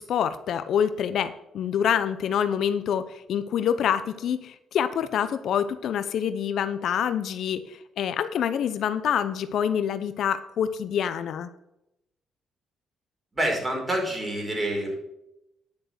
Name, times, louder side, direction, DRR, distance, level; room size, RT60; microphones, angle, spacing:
voice 1, 0.0-11.5, left 8 dB, 70° left, 12 dB, 0.7 m, -26 dB
voice 2, 13.3-14.9, right 1 dB, 20° right, 0 dB, 5.1 m, -27 dB
10.5 x 6.5 x 6.5 m, 0.85 s
cardioid pair, 90°, 0 cm